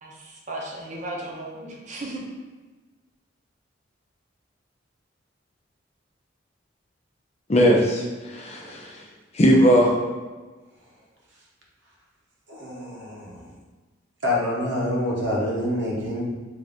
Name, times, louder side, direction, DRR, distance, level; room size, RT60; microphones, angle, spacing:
voice 1, 0.0-2.2, right 1 dB, 40° right, -2 dB, 0.7 m, -35 dB
voice 2, 7.5-8.9 9.3-9.9, equal, 35° left, -1 dB, 0.6 m, -18 dB
voice 3, 12.5-13.5 14.2-16.2, left 1 dB, 65° right, -3 dB, 0.9 m, -26 dB
3.9 x 2.6 x 3.4 m, 1.3 s
head